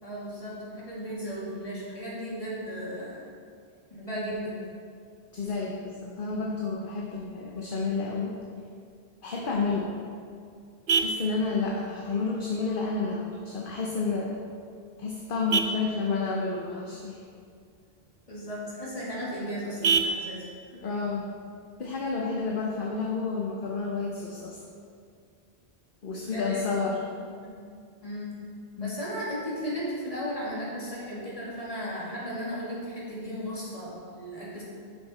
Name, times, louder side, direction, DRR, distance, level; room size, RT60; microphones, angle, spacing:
voice 1, 0.0-3.2 3.9-4.5 15.7-15.9 18.3-20.4 26.3-26.8 27.4-27.6 28.0-28.3 28.8-34.6, equal, 35° left, -7 dB, 2.3 m, -35 dB
voice 2, 5.3-8.3 9.2-9.9 10.9-14.4 15.0-17.2 20.7-21.3 21.8-24.6 26.0-27.0 28.8-29.0, left 4 dB, 60° left, -2 dB, 1.0 m, -30 dB
Vehicle horn car horn honking, 9.6-22.6, right 5 dB, 75° right, 0.8 m, -35 dB
8.3 x 6.5 x 4.3 m, 2.3 s
omnidirectional pair, 1.0 m